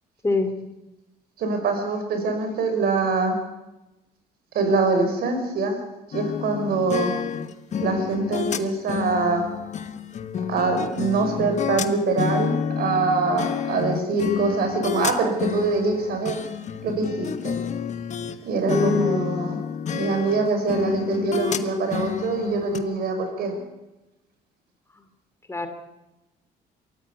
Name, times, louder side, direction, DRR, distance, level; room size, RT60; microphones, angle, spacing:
voice 1, 1.4-3.4 4.5-5.8 6.1-7.1 7.8-9.4 10.5-16.4 16.8-17.6 18.5-19.6 19.9-23.5, right 3 dB, 65° right, 6 dB, 5.6 m, -24 dB
sound 1, 6.1-18.4 18.7-22.8, left 7 dB, 45° left, 1.3 m, -29 dB
voice 2, 18.7-19.3 23.5-23.6 25.5-25.7, left 3 dB, 15° left, 8 dB, 2.5 m, -23 dB
23.5 x 14.0 x 8.3 m, 0.98 s
cardioid pair, 110°, 17 cm